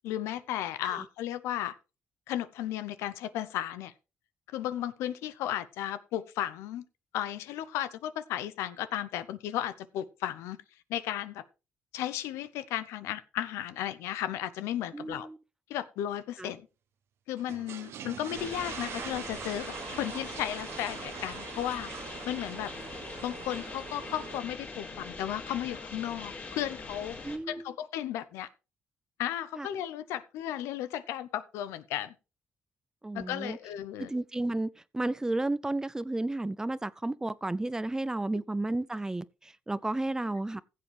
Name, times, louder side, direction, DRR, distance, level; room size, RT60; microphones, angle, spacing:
voice 1, 0.0-1.7 2.3-3.9 4.5-6.8 7.1-10.6 10.9-11.4 11.9-15.3 15.7-16.6 17.3-21.9 22.3-22.7 23.2-27.2 27.5-28.5 29.2-32.1 33.1-34.1 38.3-38.4, left 12 dB, 90° left, 0.7 m, -34 dB
voice 2, 14.9-15.4 16.4-16.5 27.2-27.7 29.6-29.7 33.0-33.6 34.0-40.6, right 2 dB, 15° right, 0.5 m, -32 dB
sound 1, 17.4-24.4, right 9 dB, 70° right, 1.0 m, -43 dB
sound 2, 18.3-27.4, left 3 dB, 40° left, 3.8 m, -42 dB
15.5 x 7.6 x 3.4 m
cardioid pair, 75°, 5 cm